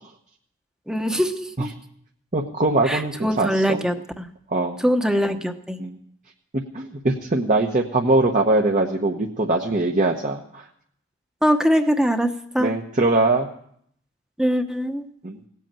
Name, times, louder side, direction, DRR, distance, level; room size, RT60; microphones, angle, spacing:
voice 1, 0.9-1.7 2.9-4.2 4.8-5.8 11.4-12.7 14.4-15.0, equal, 5° right, 7 dB, 1.0 m, -22 dB
voice 2, 2.3-3.8 4.5-4.8 5.8-6.0 6.5-10.6 12.6-13.5 15.2-15.4, right 2 dB, 40° right, 1 dB, 1.1 m, -22 dB
18.0 x 8.3 x 8.9 m, 0.68 s
head